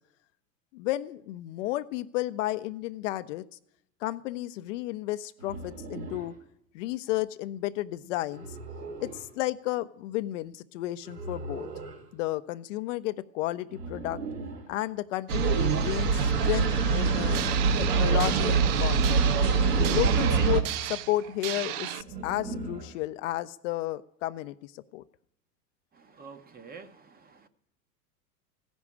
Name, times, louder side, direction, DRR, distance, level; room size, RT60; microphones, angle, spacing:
voice 1, 0.7-3.4 4.0-6.3 6.7-8.6 9.0-11.7 12.1-14.2 14.7-17.4 17.8-19.3 19.9-25.0, left 16 dB, 50° left, 11 dB, 0.5 m, -32 dB
sound 1, 5.4-6.3 8.3-9.3 11.0-12.0 13.7-14.7 16.6-17.6 19.3-20.3 22.0-23.0, right 2 dB, 85° right, 3.4 m, -39 dB
sound 2, 15.3-20.6, right 5 dB, 65° right, 1.7 m, -24 dB
sound 3, 17.3-22.0, right 13 dB, 40° right, 0.4 m, -35 dB
voice 2, 25.9-27.5, right 5 dB, 20° right, 10 dB, 0.8 m, -48 dB
15.0 x 6.2 x 8.5 m, 0.74 s
hypercardioid pair, 105°, 50 cm